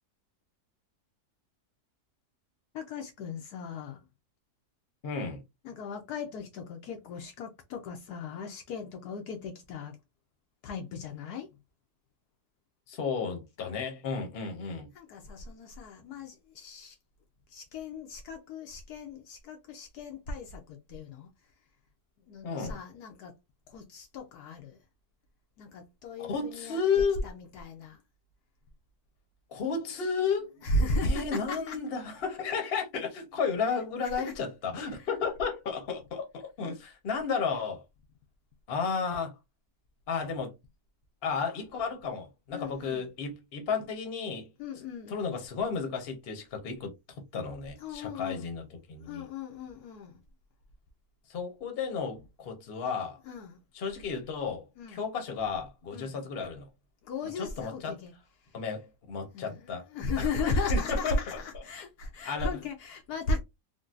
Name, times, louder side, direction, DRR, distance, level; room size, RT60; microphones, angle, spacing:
voice 1, 2.7-4.0 5.6-10.0 10.6-11.5 14.9-17.0 17.5-21.3 22.2-23.3 23.7-24.8 25.6-28.0 30.6-31.8 34.2-34.3 35.0-35.1 42.5-43.1 44.6-45.4 47.8-48.5 49.0-50.2 53.2-53.6 54.8-55.0 55.9-56.2 57.0-58.1 58.4-58.5 59.3-63.4, left 2 dB, 75° left, 1.1 m, -36 dB
voice 2, 5.0-5.4 12.9-14.9 22.4-22.8 26.2-27.2 29.5-30.5 31.0-37.8 38.7-39.4 40.1-40.5 41.2-44.5 45.1-49.2 51.3-53.2 53.7-56.7 57.4-58.0 58.5-59.9 60.2-61.6 62.2-62.5, left 5 dB, 45° left, 0.9 m, -33 dB
3.8 x 2.2 x 2.4 m
omnidirectional pair, 1.8 m